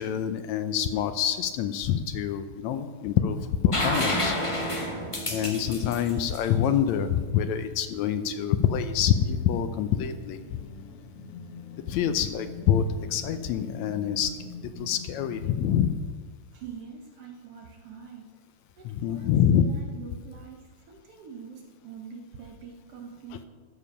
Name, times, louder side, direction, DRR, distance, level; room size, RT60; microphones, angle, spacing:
voice 1, 0.0-4.4 5.3-10.6 11.9-14.3 14.8-16.0 18.9-19.6, left 9 dB, 75° left, 9 dB, 1.8 m, -26 dB
sound 1, 3.7-7.4 9.3-9.4, left 1 dB, 35° left, 0.5 m, -30 dB
sound 2, 9.1-15.9, left 2 dB, 55° left, 2.6 m, -43 dB
voice 2, 16.5-18.4 18.8-23.5, right 5 dB, 65° right, 2 dB, 1.7 m, -44 dB
13.5 x 7.2 x 5.7 m, 1.5 s
omnidirectional pair, 3.5 m